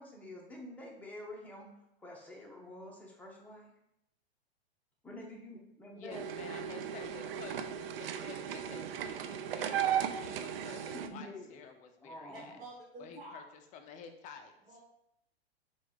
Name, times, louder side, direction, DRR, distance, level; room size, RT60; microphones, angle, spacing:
voice 1, 0.0-1.7 2.0-3.7 5.0-6.2 10.9-11.6 12.0-12.6, left 1 dB, 5° left, -2 dB, 0.8 m, -48 dB
voice 2, 6.0-7.7 8.0-12.6 13.0-13.4 13.7-14.5, left 6 dB, 25° left, 6 dB, 0.4 m, -50 dB
sound 1, 6.1-11.1, right 9 dB, 65° right, 0.4 m, -36 dB
voice 3, 12.3-13.4 14.6-14.8, right 1 dB, 50° right, -4 dB, 1.3 m, -49 dB
3.6 x 2.4 x 4.4 m, 0.81 s
hypercardioid pair, 105°, 31 cm